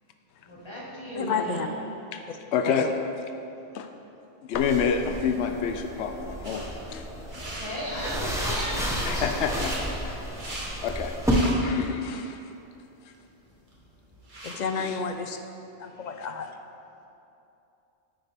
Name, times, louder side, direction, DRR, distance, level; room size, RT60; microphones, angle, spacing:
voice 1, 0.5-1.7 7.4-9.3, equal, 25° left, -6 dB, 1.9 m, -35 dB
voice 2, 1.1-1.7 2.3-2.4 2.6-2.9 14.4-15.4 15.8-16.5, left 5 dB, 50° left, 6 dB, 0.6 m, -30 dB
voice 3, 2.5-2.9 3.7-3.9 4.4-7.1 9.0-9.7 10.0-10.1 10.4-12.4 14.8-15.0, left 6 dB, 80° left, 6 dB, 0.9 m, -29 dB
sound 1, 4.5-11.3, equal, 5° right, 1.0 m, -33 dB
sound 2, 6.4-6.7 7.2-7.7 8.2-8.7 9.3-9.8 10.2-10.7 11.1-11.9 12.3-12.4 13.1-13.2 13.5-14.6, right 1 dB, 45° right, 1.6 m, -39 dB
9.8 x 9.0 x 3.5 m, 2.8 s
omnidirectional pair, 1.1 m